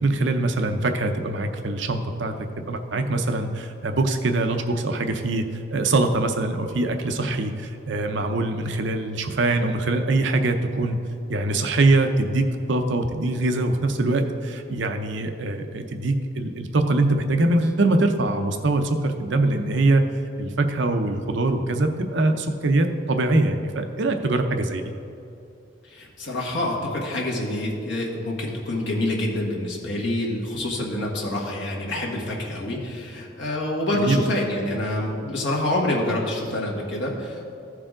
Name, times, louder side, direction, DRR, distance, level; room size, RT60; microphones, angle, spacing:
voice 1, 0.0-2.3 2.7-11.0 11.3-20.1 20.4-24.8 33.9-34.2, right 2 dB, 65° right, 6 dB, 0.6 m, -23 dB
voice 2, 25.8-37.5, left 1 dB, 65° left, -3 dB, 1.6 m, -27 dB
14.5 x 4.9 x 3.7 m, 2.6 s
head